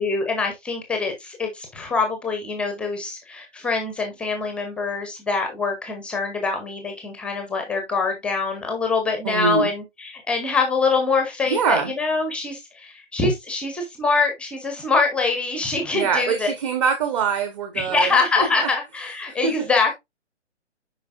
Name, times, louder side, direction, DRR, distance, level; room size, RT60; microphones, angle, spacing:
voice 1, 0.0-16.5 17.7-19.9, left 4 dB, 5° left, 0.7 m, -24 dB
voice 2, 9.2-9.7 11.5-11.9 15.9-18.1 18.4-18.7 19.4-19.7, right 6 dB, 25° right, 1.2 m, -23 dB
9.5 x 5.0 x 2.5 m
figure-of-eight pair, 135°, 36 cm